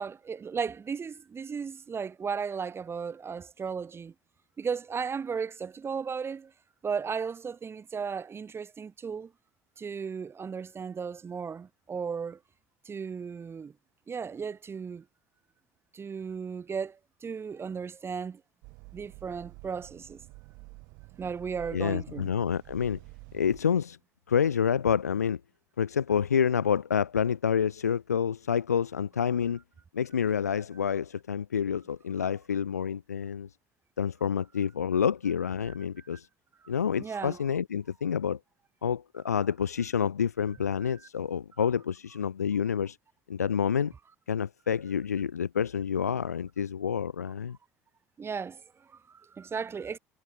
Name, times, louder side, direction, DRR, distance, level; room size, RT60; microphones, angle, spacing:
voice 1, 0.0-4.1 4.6-6.5 6.8-9.3 9.8-12.4 12.8-13.7 14.1-15.0 15.9-18.4 18.9-20.2 21.2-22.3 35.7-36.1 37.0-37.4 40.8-41.1 48.2-50.0, right 6 dB, 30° right, 2.5 m, -35 dB
sound 1, 18.6-23.6, right 28 dB, 60° right, 5.0 m, -49 dB
voice 2, 21.7-23.0 23.3-24.0 24.3-25.4 25.8-29.6 29.9-33.5 34.0-36.3 36.7-38.4 38.8-43.0 43.3-43.9 44.3-47.6, left 7 dB, 85° left, 0.5 m, -28 dB
figure-of-eight pair, 60°, 8 cm